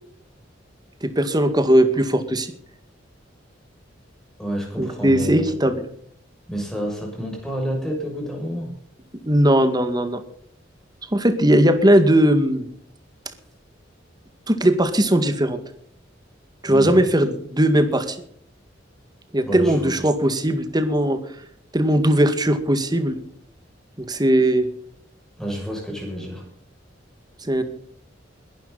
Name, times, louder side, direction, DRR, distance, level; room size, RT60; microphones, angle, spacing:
voice 1, 1.0-2.5 4.8-5.7 9.2-10.2 11.1-12.7 14.5-15.6 16.6-18.2 19.3-21.2 21.7-23.2 24.0-24.7 27.4-27.6, right 1 dB, 20° right, 9 dB, 2.0 m, -18 dB
voice 2, 4.4-5.5 6.5-8.7 16.7-17.0 19.4-19.9 25.4-26.4, equal, 5° left, 0 dB, 6.7 m, -29 dB
21.0 x 12.0 x 4.1 m, 0.66 s
head